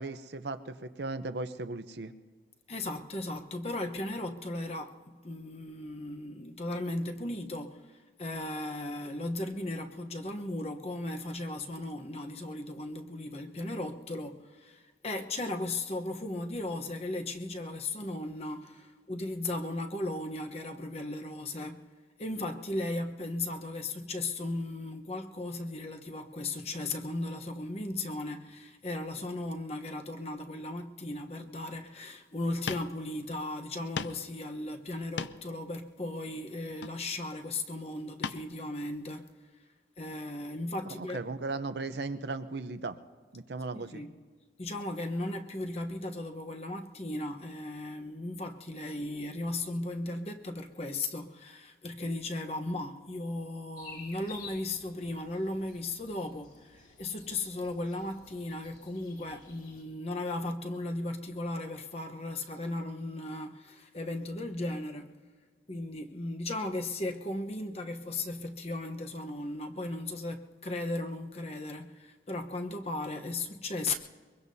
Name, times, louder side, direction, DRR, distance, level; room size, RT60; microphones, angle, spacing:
voice 1, 0.0-2.1 40.8-43.0 43.3-44.0, right 3 dB, 75° right, 0.7 m, -37 dB
voice 2, 2.7-5.0 5.2-7.8 8.2-21.9 22.2-39.3 40.0-41.2 43.7-44.1 44.6-65.2 65.7-73.9, left 2 dB, 35° left, 1.0 m, -36 dB
sound 1, 32.4-32.5 32.7-32.9 33.3-33.4 34.0-34.3 34.9-35.6 36.7-37.3 38.2-38.5 38.9-39.0, left 5 dB, 85° left, 0.5 m, -37 dB
sound 2, 53.8-59.8, left 4 dB, 55° left, 5.2 m, -52 dB
23.0 x 23.0 x 2.8 m
head